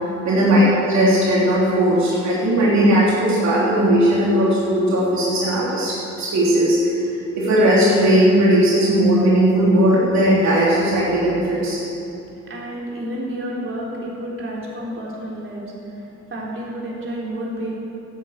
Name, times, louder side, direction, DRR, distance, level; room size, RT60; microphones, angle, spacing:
voice 1, 0.2-6.8 7.3-11.8, right 1 dB, 65° right, -7 dB, 3.2 m, -17 dB
voice 2, 12.5-15.6 16.0-17.7, right 1 dB, 45° right, -4 dB, 3.9 m, -30 dB
12.5 x 9.3 x 8.2 m, 2.9 s
cardioid pair, 90°, 30 cm